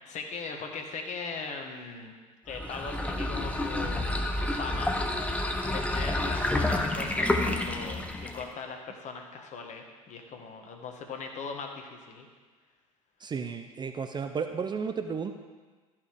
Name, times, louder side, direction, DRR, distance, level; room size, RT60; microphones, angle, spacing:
voice 1, 0.0-2.1 2.5-12.3, left 4 dB, 40° left, 3 dB, 1.6 m, -40 dB
sound 1, 2.5-8.5, left 1 dB, 5° left, 1.0 m, -29 dB
voice 2, 13.2-15.3, right 6 dB, 25° right, 7 dB, 0.6 m, -33 dB
13.0 x 5.9 x 4.8 m, 1.4 s
figure-of-eight pair, 70°, 19 cm